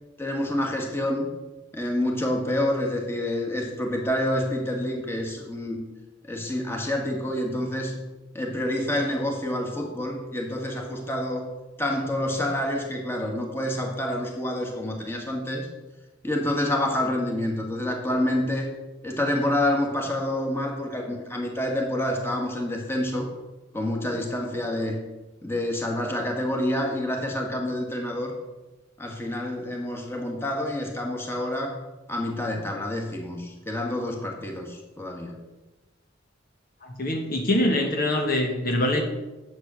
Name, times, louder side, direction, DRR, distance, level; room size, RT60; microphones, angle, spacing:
voice 1, 0.2-1.3 1.7-5.8 6.2-8.0 8.3-11.5 11.8-15.7 16.2-18.7 19.0-23.3 23.7-25.0 25.4-28.3 29.0-31.8 32.1-35.4, left 1 dB, 10° left, 0 dB, 1.8 m, -28 dB
voice 2, 36.8-39.0, left 1 dB, 50° left, 2 dB, 1.3 m, -24 dB
10.0 x 7.7 x 6.3 m, 1.1 s
head